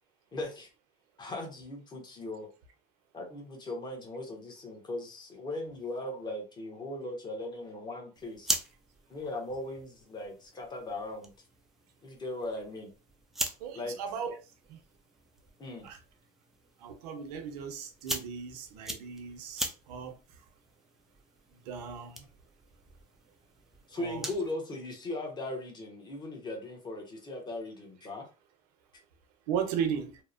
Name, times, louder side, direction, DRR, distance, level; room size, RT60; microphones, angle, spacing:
voice 1, 0.3-0.7 1.2-2.5 3.1-8.6 9.1-11.3 12.0-12.9 13.7-14.0 15.6-15.9 23.9-28.3, left 2 dB, 20° left, 0.8 m, -38 dB
sound 1, 8.1-24.5, right 1 dB, ahead, 0.3 m, -42 dB
voice 2, 13.6-14.4 14.7-14.8 15.8-16.0 16.8-20.2 21.7-22.2 24.0-24.3 29.5-30.2, right 7 dB, 90° right, 0.7 m, -36 dB
2.8 x 2.0 x 2.4 m
supercardioid pair, 130°, 20 cm